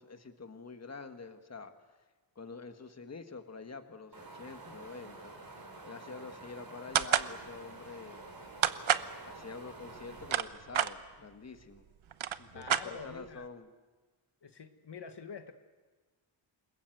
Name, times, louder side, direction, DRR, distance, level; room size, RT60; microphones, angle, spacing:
voice 1, 0.0-1.7 2.3-5.3 5.8-8.2 9.3-11.9 12.4-13.7, left 4 dB, 30° left, 7 dB, 1.6 m, -47 dB
Wind, 4.1-10.4, right 3 dB, 45° right, 4.7 m, -49 dB
sound 1, 7.0-7.3 8.6-9.1 10.0-10.9 11.8-11.9 12.1-13.3, right 9 dB, 75° right, 1.0 m, -29 dB
voice 2, 12.5-13.5 14.4-15.5, left 6 dB, 55° left, 7 dB, 1.4 m, -46 dB
28.0 x 21.5 x 8.0 m, 1.3 s
wide cardioid pair, 140°, 48 cm